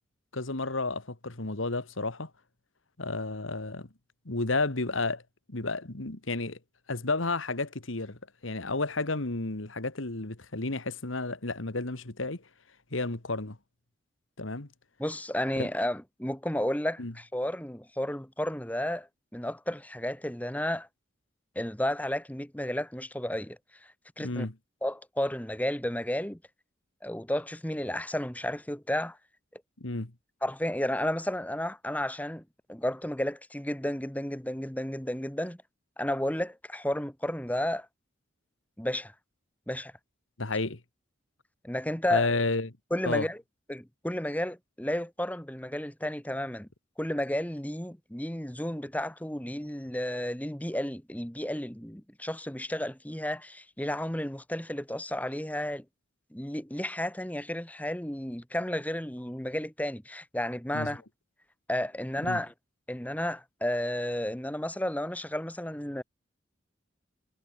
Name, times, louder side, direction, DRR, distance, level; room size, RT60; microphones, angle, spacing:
voice 1, 0.3-2.3 3.0-3.9 4.3-5.2 5.5-6.6 6.9-12.4 12.9-13.6 14.4-14.7 15.6-15.7 17.0-17.1 24.2-24.5 29.8-30.1 40.4-40.8 42.1-42.7 43.0-43.3 60.7-61.0 62.3-62.4, left 3 dB, 80° left, 2.0 m, -31 dB
voice 2, 15.0-20.9 21.5-24.5 24.8-26.4 27.0-29.2 29.5-29.6 30.4-32.4 32.7-35.6 36.0-37.9 38.8-39.1 39.7-39.9 41.6-42.3 42.9-43.4 43.7-46.7 47.0-55.8 56.3-61.0 61.7-62.5 62.9-66.0, left 1 dB, 5° left, 1.5 m, -32 dB
head